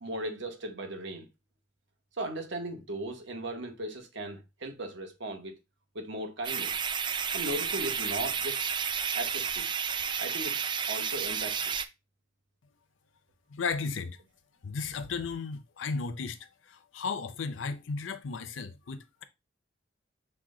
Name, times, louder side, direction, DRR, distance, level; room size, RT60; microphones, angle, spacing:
voice 1, 0.0-1.3 2.2-5.6 5.9-6.8 7.3-8.6 9.1-9.7 10.2-11.6, right 1 dB, 70° right, 1.1 m, -37 dB
sound 1, 6.4-11.8, right 7 dB, 25° right, 0.3 m, -31 dB
voice 2, 13.5-14.2 14.6-19.2, left 4 dB, 85° left, 0.5 m, -35 dB
5.9 x 2.2 x 3.7 m
head